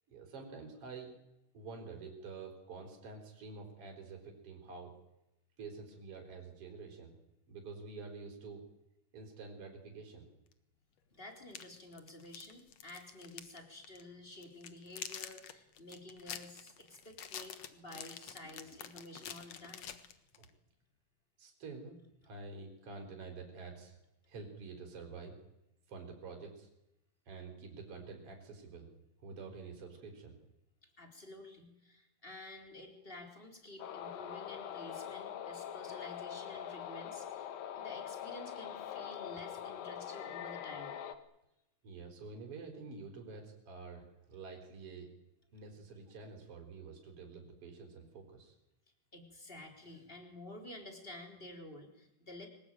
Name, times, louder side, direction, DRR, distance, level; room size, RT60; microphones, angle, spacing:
voice 1, 0.1-1.1 1.5-4.9 5.6-7.1 7.5-8.6 9.1-10.3 18.4-18.8 21.4-22.0 22.2-24.0 24.3-25.3 25.9-26.7 27.3-28.9 29.2-30.4 41.8-45.1 45.5-48.6, right 4 dB, 40° right, 2 dB, 5.0 m, -48 dB
sound 1, 10.5-10.6 11.4-13.6 13.8-14.0 14.4-20.5, left 9 dB, 55° left, 2.3 m, -47 dB
voice 2, 11.1-19.9 31.0-41.0 49.1-52.5, left 1 dB, 15° left, 4 dB, 4.0 m, -51 dB
sound 2, 33.8-41.2, left 9 dB, 90° left, 3.3 m, -43 dB
25.5 x 18.5 x 9.2 m, 0.87 s
omnidirectional pair, 3.9 m